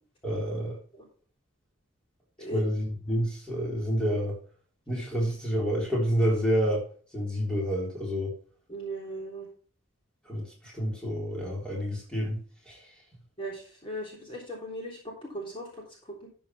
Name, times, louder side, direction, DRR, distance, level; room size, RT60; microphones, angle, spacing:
voice 1, 0.2-0.8 2.5-4.4 4.9-6.8 7.1-8.3 10.3-12.4 12.7-12.9, equal, 5° left, -3 dB, 3.8 m, -28 dB
voice 2, 8.7-9.5 13.4-16.3, right 1 dB, 25° left, -2 dB, 3.4 m, -38 dB
12.5 x 7.3 x 3.2 m, 0.43 s
head